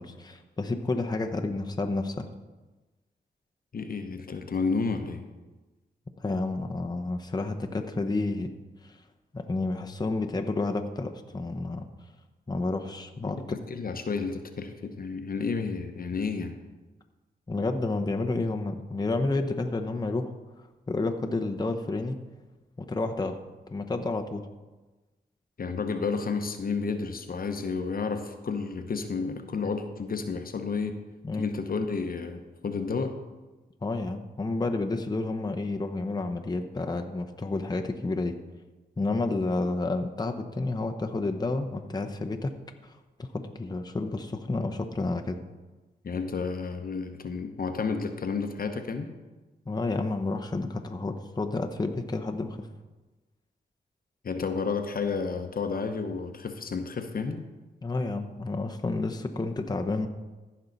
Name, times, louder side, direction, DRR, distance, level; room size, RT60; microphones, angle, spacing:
voice 1, 0.0-2.3 6.2-8.5 8.8-9.0 9.3-11.8 12.5-13.6 17.5-20.3 20.9-22.2 22.8-23.4 23.7-24.5 31.2-31.5 33.8-38.4 39.0-42.5 42.8-45.4 49.7-52.7 57.8-60.1, left 2 dB, 25° left, 4 dB, 0.8 m, -30 dB
voice 2, 3.7-5.2 13.2-16.6 25.6-31.0 31.4-33.2 46.0-49.1 54.2-57.4, left 4 dB, 55° left, 7 dB, 0.9 m, -31 dB
14.5 x 5.5 x 4.0 m, 1.2 s
cardioid pair, 65°, 17 cm